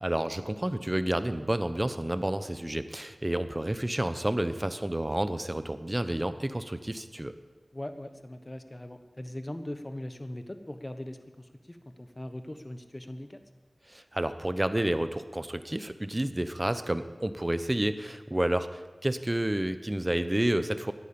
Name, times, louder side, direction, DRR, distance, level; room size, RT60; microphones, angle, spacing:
voice 1, 0.0-7.3 13.9-20.9, right 1 dB, 25° right, 11 dB, 1.0 m, -30 dB
voice 2, 7.7-13.4, left 1 dB, 30° left, 8 dB, 1.3 m, -40 dB
15.0 x 10.5 x 8.7 m, 1.3 s
wide cardioid pair, 55°, 0 cm